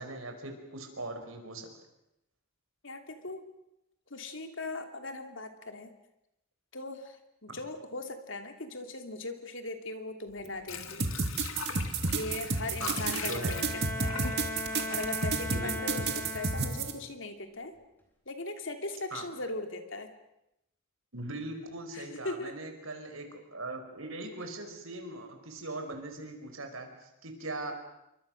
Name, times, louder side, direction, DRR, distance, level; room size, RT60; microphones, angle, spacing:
voice 1, 0.0-1.7 7.5-7.6 12.8-13.6 15.5-16.0 19.1-19.3 21.1-27.7, right 2 dB, 80° right, 5 dB, 5.1 m, -40 dB
voice 2, 2.8-3.4 4.1-5.9 6.7-11.1 12.0-14.2 14.9-17.7 18.3-20.1 21.9-22.5, left 2 dB, 65° left, 7 dB, 2.8 m, -39 dB
Water / Sink (filling or washing), 10.3-16.2 16.5-16.6, left 6 dB, 80° left, 2.3 m, -42 dB
sound 1, 11.0-16.9, right 4 dB, 55° right, 2.5 m, -30 dB
Bowed string instrument, 13.0-17.1, left 1 dB, 10° left, 4.7 m, -38 dB
28.0 x 24.0 x 6.5 m, 0.84 s
head